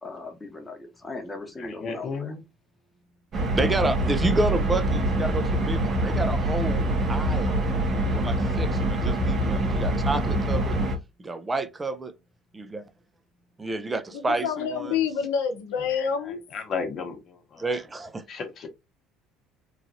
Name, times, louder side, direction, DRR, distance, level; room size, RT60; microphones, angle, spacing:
voice 1, 0.0-2.3, left 2 dB, 20° left, 0.9 m, -38 dB
voice 2, 1.6-2.4 16.0-16.1 16.5-17.2 17.5-17.6 18.3-18.7, left 5 dB, 50° left, 1.0 m, -33 dB
sound 1, 3.3-11.0, right 1 dB, 40° right, 1.0 m, -25 dB
voice 3, 3.5-7.6 8.1-10.8 11.2-12.1 12.5-12.8 13.6-15.0 17.6-18.2, right 2 dB, 20° right, 0.5 m, -29 dB
voice 4, 14.1-16.4, left 7 dB, 80° left, 0.7 m, -27 dB
3.1 x 2.5 x 2.6 m
hypercardioid pair, 75°, 0 cm